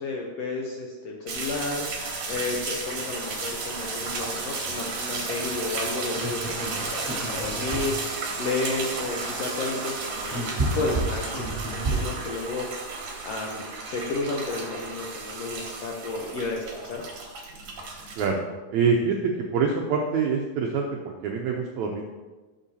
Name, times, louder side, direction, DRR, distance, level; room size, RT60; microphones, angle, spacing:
voice 1, 0.0-1.9 2.3-8.0 8.4-12.7 13.2-17.0, left 3 dB, 85° left, 0 dB, 1.4 m, -32 dB
sound 1, 1.3-18.3, right 3 dB, 60° right, 2.7 m, -33 dB
sound 2, 6.0-8.2 9.8-12.3, right 2 dB, 25° right, 1.9 m, -31 dB
voice 2, 18.7-20.9 21.2-22.0, right 5 dB, 75° right, 1 dB, 1.7 m, -25 dB
12.5 x 7.1 x 2.8 m, 1.3 s
omnidirectional pair, 3.9 m